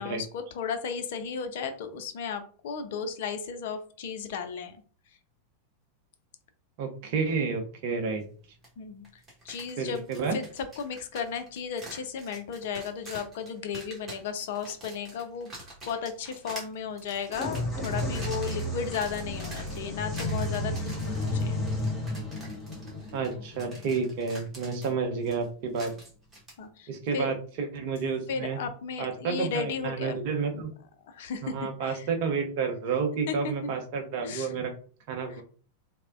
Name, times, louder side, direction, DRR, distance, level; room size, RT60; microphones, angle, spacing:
voice 1, 0.0-4.8 8.8-9.0 9.4-15.5 15.8-21.6 24.9-25.0 26.6-27.3 28.3-30.2 30.5-30.6 31.0-31.5 31.8-32.1 33.3-33.4 33.6-33.7 34.2-34.6 35.3-35.4, left 6 dB, 55° left, 8 dB, 0.4 m, -35 dB
voice 2, 6.8-8.2 9.8-10.4 23.1-25.9 26.9-28.6 29.0-30.7 31.4-34.7 35.1-35.4, right 5 dB, 45° right, 3 dB, 0.6 m, -30 dB
sound 1, 8.6-8.7 9.0-26.6, right 1 dB, 15° right, 1.1 m, -47 dB
sound 2, 17.3-24.9, left 1 dB, 10° left, 1.3 m, -33 dB
3.2 x 2.1 x 2.4 m, 0.42 s
figure-of-eight pair, 90°, 0 cm